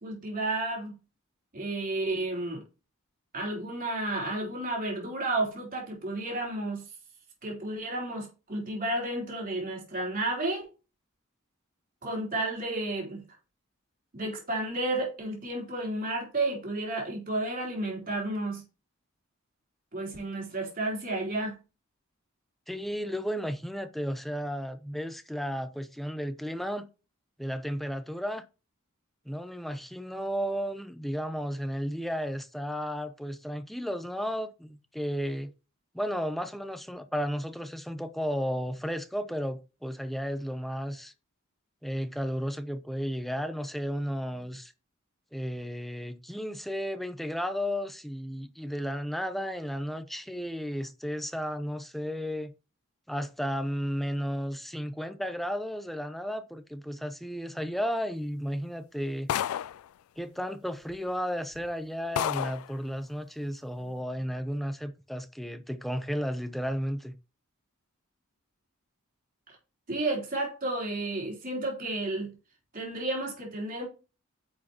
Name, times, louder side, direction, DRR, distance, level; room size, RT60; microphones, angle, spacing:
voice 1, 0.0-1.0 1.5-2.6 3.3-6.8 7.4-10.7 12.0-13.2 14.1-18.6 19.9-21.6 69.5-69.6 69.9-72.3 72.7-73.9, right 2 dB, 45° right, 3.8 m, -32 dB
voice 2, 22.7-26.9 27.4-28.4 29.3-35.5 35.9-41.1 41.8-44.7 45.3-52.5 53.1-59.4 60.2-67.2, equal, ahead, 0.7 m, -33 dB
sound 1, 59.3-59.9 60.9-61.0 61.5-61.7 62.2-62.7, left 10 dB, 80° left, 0.3 m, -30 dB
9.9 x 6.2 x 3.0 m
head